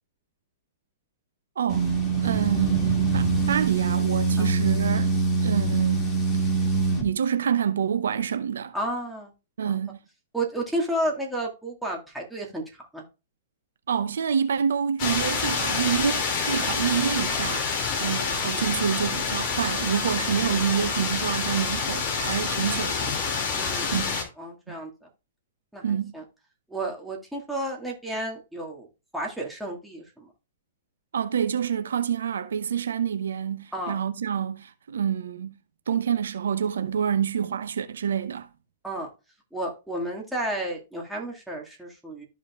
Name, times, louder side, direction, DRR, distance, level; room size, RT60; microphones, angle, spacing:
voice 1, 1.6-1.9 2.2-6.2 7.0-8.7 9.6-10.0 13.9-23.2 23.9-24.1 25.8-26.1 31.1-35.6 35.9-38.5, right 8 dB, 70° right, 0.7 m, -27 dB
distorted bass, 1.7-7.1, right 4 dB, 25° left, 2.2 m, -24 dB
voice 2, 8.7-9.3 9.6-9.8 10.3-12.6 12.9-13.1 16.6-16.7 17.9-18.1 23.5-23.9 24.4-24.9 25.7-26.2 26.7-28.9 29.1-30.3 33.7-34.0 38.8-39.1 39.5-42.3, right 1 dB, ahead, 2.0 m, -32 dB
sound 1, 15.0-24.2, left 5 dB, 40° left, 2.4 m, -27 dB
13.0 x 5.2 x 2.4 m
figure-of-eight pair, 115°, 0 cm